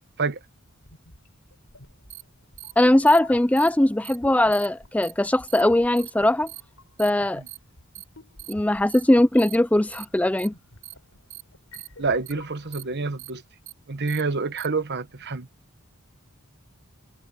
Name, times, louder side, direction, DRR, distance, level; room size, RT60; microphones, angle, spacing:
sound 1, 0.9-12.9, left 3 dB, 80° left, 4.8 m, -50 dB
sound 2, 2.1-2.2 2.6-2.7 3.1-3.2 3.6-3.7 4.0-4.2 4.5-4.7 5.0-5.1 5.5-5.6 6.0-6.1 6.5-6.6 7.0-7.1 7.5-7.6 7.9-8.0 8.4-8.5 8.9-9.0 9.4-9.6 9.9-10.0 10.4-10.5 10.8-10.9 11.3-11.4 11.7-11.9 12.3-12.4 12.7-12.8 13.2-13.3 13.7-13.8 14.1-14.2 14.6-14.7, right 17 dB, 90° right, 3.9 m, -41 dB
voice 1, 2.8-6.5 7.0-7.4 8.5-10.5, left 1 dB, 5° left, 0.4 m, -20 dB
voice 2, 12.0-13.4 13.9-15.5, right 4 dB, 55° right, 1.2 m, -27 dB
head